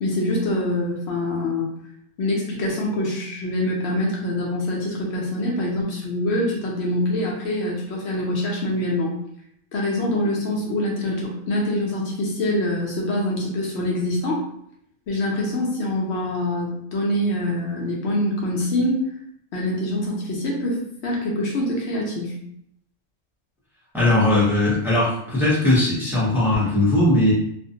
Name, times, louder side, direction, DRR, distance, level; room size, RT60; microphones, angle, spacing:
voice 1, 0.0-1.7 2.2-9.1 9.7-14.4 15.1-19.0 19.5-22.3, left 1 dB, 65° left, -2 dB, 0.8 m, -25 dB
voice 2, 23.9-27.3, left 1 dB, ahead, -8 dB, 0.6 m, -19 dB
2.4 x 2.1 x 2.7 m, 0.72 s
omnidirectional pair, 1.4 m